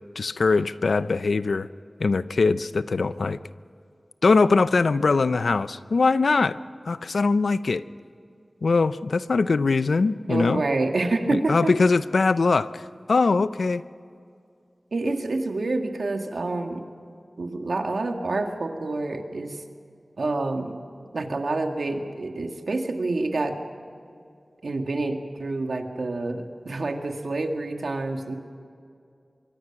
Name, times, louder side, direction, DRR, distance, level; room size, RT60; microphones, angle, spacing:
voice 1, 0.2-1.7 2.0-3.4 4.2-6.6 6.9-7.8 8.6-10.6 11.3-12.8 13.1-13.8, left 4 dB, 90° left, 14 dB, 0.6 m, -21 dB
voice 2, 10.3-11.7 14.9-16.8 17.4-19.6 20.2-20.8 21.1-23.6 24.6-28.4, right 2 dB, 85° right, 4 dB, 2.0 m, -27 dB
25.5 x 23.0 x 6.0 m, 2.4 s
wide cardioid pair, 70°, 0 cm